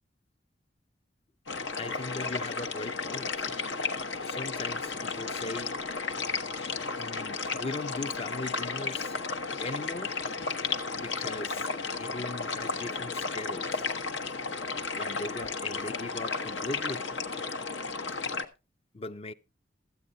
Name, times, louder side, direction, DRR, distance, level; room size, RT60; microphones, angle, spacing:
sound 1, 1.5-18.4, left 4 dB, 75° left, 1.2 m, -33 dB
voice 1, 1.7-3.5 4.2-5.8 7.0-9.2 9.6-10.2 11.0-11.7 12.0-13.9 15.0-17.0 18.9-19.3, left 2 dB, 35° left, 0.6 m, -39 dB
14.5 x 8.5 x 4.0 m
head